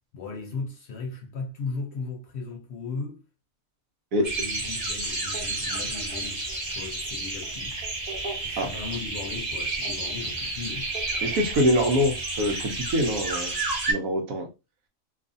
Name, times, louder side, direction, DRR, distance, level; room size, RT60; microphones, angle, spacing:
voice 1, 0.1-3.2 4.2-7.8 8.4-10.9, left 4 dB, 65° left, 0.7 m, -37 dB
sound 1, 4.2-13.9, right 2 dB, 35° right, 0.8 m, -31 dB
voice 2, 11.2-13.5 13.9-14.5, equal, 85° right, 1.1 m, -24 dB
2.6 x 2.4 x 2.5 m
omnidirectional pair, 1.4 m